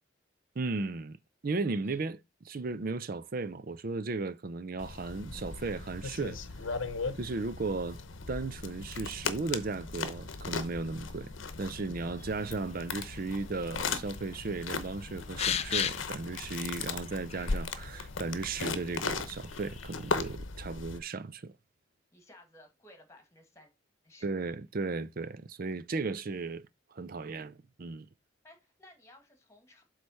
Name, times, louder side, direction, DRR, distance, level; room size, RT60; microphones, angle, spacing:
voice 1, 0.6-1.2 1.4-6.4 7.2-8.0 8.3-11.3 11.6-21.5 24.2-26.6 26.9-28.1, right 3 dB, 45° right, 0.5 m, -35 dB
sound 1, 4.8-21.0, left 4 dB, 85° left, 0.8 m, -38 dB
voice 2, 12.0-12.6 22.1-23.7 24.0-24.4 28.4-29.8, left 1 dB, 15° left, 1.7 m, -57 dB
sound 2, 12.2-20.4, left 9 dB, 35° left, 0.4 m, -40 dB
7.8 x 3.3 x 5.6 m
head